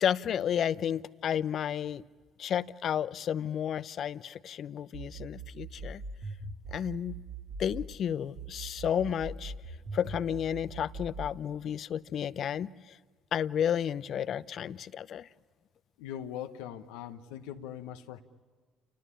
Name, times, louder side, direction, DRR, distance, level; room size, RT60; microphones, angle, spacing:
voice 1, 0.0-2.0 2.4-6.0 6.7-7.2 7.6-9.5 9.9-13.0 13.3-15.3, left 9 dB, 60° left, 0.8 m, -32 dB
sound 1, 4.9-7.9 8.4-11.4, right 3 dB, 50° right, 2.8 m, -41 dB
voice 2, 16.0-18.2, left 10 dB, 80° left, 1.1 m, -41 dB
29.5 x 19.0 x 10.0 m
hypercardioid pair, 55°, 0 cm